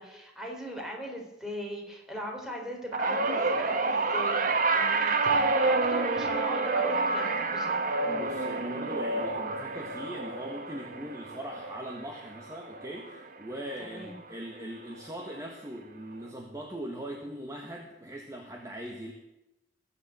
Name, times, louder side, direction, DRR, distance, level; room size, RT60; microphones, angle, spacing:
voice 1, 0.0-7.7 13.8-14.2, equal, 5° right, 0 dB, 3.8 m, -39 dB
sound 1, 2.9-13.4 13.7-14.1 15.2-15.3, right 3 dB, 50° right, 1.3 m, -28 dB
voice 2, 8.1-19.1, right 1 dB, 20° right, 1 dB, 1.6 m, -40 dB
21.0 x 7.2 x 7.8 m, 0.91 s
head